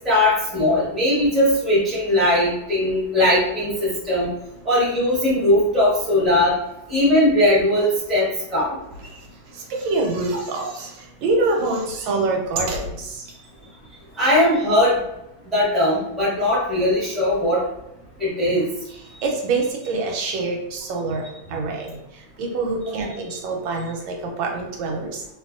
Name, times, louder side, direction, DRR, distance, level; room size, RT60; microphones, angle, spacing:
voice 1, 0.0-4.3 4.6-6.5 6.9-8.8 14.2-15.0 15.4-17.6 18.2-18.6, left 1 dB, ahead, -8 dB, 0.9 m, -19 dB
sound 1, 8.8-11.1 11.4-13.4 14.0-14.1 14.3-14.4, right 2 dB, 70° right, 1.2 m, -36 dB
voice 2, 9.5-13.3 18.9-25.3, right 3 dB, 90° right, 1 dB, 1.4 m, -26 dB
2.8 x 2.6 x 2.5 m, 0.86 s
omnidirectional pair, 2.1 m